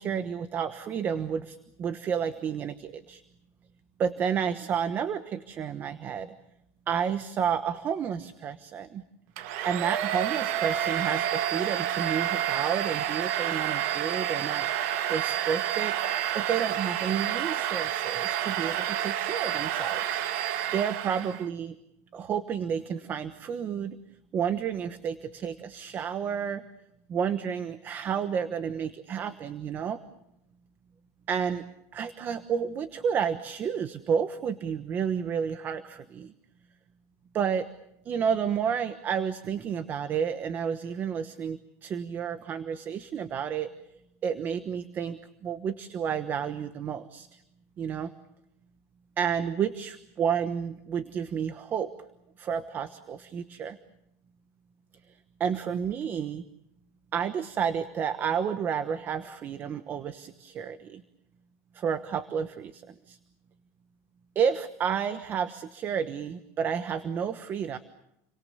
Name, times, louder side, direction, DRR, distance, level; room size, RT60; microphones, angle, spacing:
voice 1, 0.0-3.2 4.0-6.3 6.9-9.0 9.6-16.0 16.3-20.2 20.7-21.8 22.1-24.0 24.3-26.6 27.1-30.0 31.3-31.6 31.9-36.3 37.3-37.7 38.0-43.7 44.2-47.4 47.8-48.1 49.2-51.9 52.4-53.8 55.1-56.4 57.1-61.0 61.7-63.2 64.3-67.8, right 7 dB, 25° right, 11 dB, 1.1 m, -31 dB
Domestic sounds home sounds, 9.4-21.5, right 11 dB, 65° right, 1.9 m, -29 dB
30.0 x 24.5 x 7.0 m, 0.82 s
supercardioid pair, 170°, 8 cm